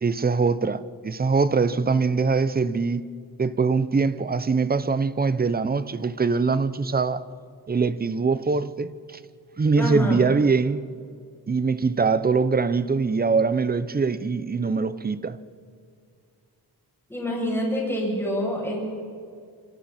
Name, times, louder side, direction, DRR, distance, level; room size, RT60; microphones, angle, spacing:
voice 1, 0.0-3.1 3.4-7.2 7.7-9.2 9.6-10.9 11.5-15.4, right 4 dB, 20° right, 0.7 m, -23 dB
voice 2, 9.8-10.2 17.1-18.8, equal, 5° left, 7.8 m, -26 dB
28.0 x 26.5 x 4.3 m
wide cardioid pair, 155°, 42 cm